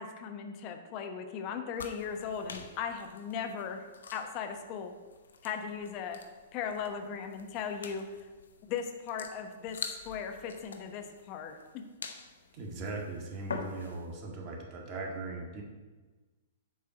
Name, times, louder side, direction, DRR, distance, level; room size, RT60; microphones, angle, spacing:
voice 1, 0.0-3.8 4.1-4.9 5.4-6.2 6.5-8.0 8.7-9.8 10.0-11.6, left 7 dB, 40° left, 6 dB, 1.0 m, -37 dB
sound 1, 1.7-14.2, left 5 dB, 75° left, 0.9 m, -46 dB
voice 2, 12.5-15.6, right 3 dB, 35° right, 0 dB, 1.8 m, -39 dB
8.1 x 4.7 x 6.0 m, 1.3 s
hypercardioid pair, 115°, 0 cm